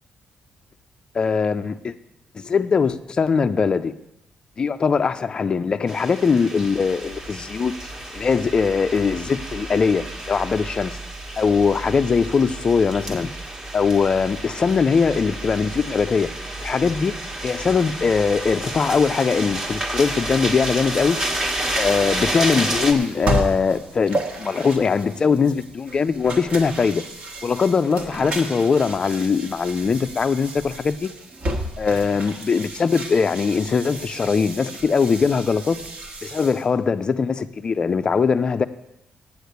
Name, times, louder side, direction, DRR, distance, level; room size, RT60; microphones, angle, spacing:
voice 1, 1.1-1.9 2.3-3.9 4.6-7.7 8.1-11.0 11.4-13.3 13.7-16.3 16.6-17.1 17.4-21.2 21.8-27.0 27.4-31.1 31.8-35.8 36.2-38.7, left 5 dB, 30° left, 11 dB, 0.4 m, -21 dB
sound 1, 5.9-22.9, right 1 dB, 20° right, 1.3 m, -31 dB
sound 2, 6.5-22.6, right 3 dB, 65° right, 1.9 m, -40 dB
sound 3, 22.0-36.7, right 1 dB, 45° right, 1.5 m, -33 dB
8.5 x 8.3 x 8.1 m, 0.87 s
cardioid pair, 155°, 3 cm